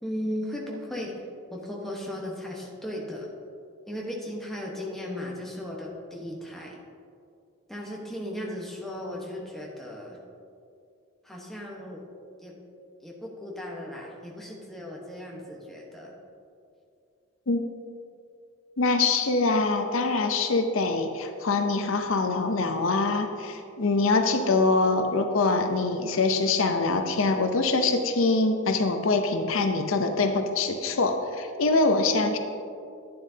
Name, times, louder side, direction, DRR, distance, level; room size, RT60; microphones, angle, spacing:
voice 1, 0.0-1.2 1.5-3.3 3.9-6.8 7.7-10.2 11.2-12.1 12.4-12.5 13.0-16.2, left 1 dB, ahead, -3 dB, 1.1 m, -36 dB
voice 2, 18.8-32.4, left 3 dB, 70° left, 6 dB, 0.6 m, -24 dB
11.5 x 9.4 x 2.8 m, 2.4 s
head